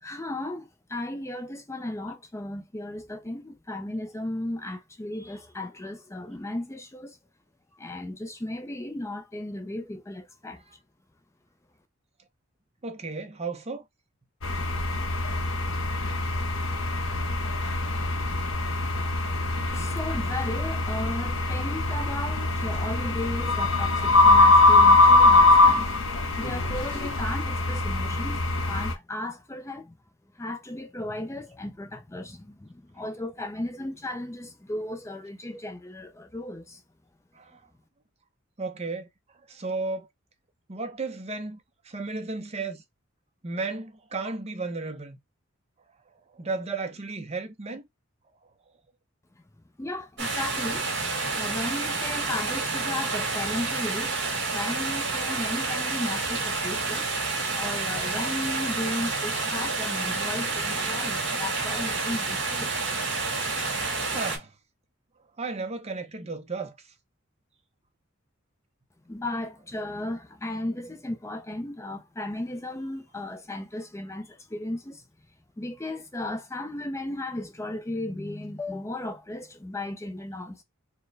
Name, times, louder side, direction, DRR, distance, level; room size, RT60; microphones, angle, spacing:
voice 1, 0.0-7.2 7.7-10.6 19.7-25.9 26.4-30.0 30.3-36.8 49.8-54.2 54.5-57.2 57.5-62.7 69.1-75.0 75.6-80.6, left 1 dB, 15° left, 0.5 m, -35 dB
voice 2, 12.8-13.8 37.3-37.6 38.6-39.1 39.5-40.1 40.7-42.8 43.4-45.2 46.3-47.9 48.4-48.5 64.1-64.5 65.4-66.9, right 3 dB, 30° right, 0.7 m, -34 dB
sound 1, 14.4-28.9, left 2 dB, 75° left, 0.9 m, -22 dB
sound 2, 50.2-64.4, right 3 dB, 60° right, 1.8 m, -29 dB
4.4 x 2.2 x 3.2 m
head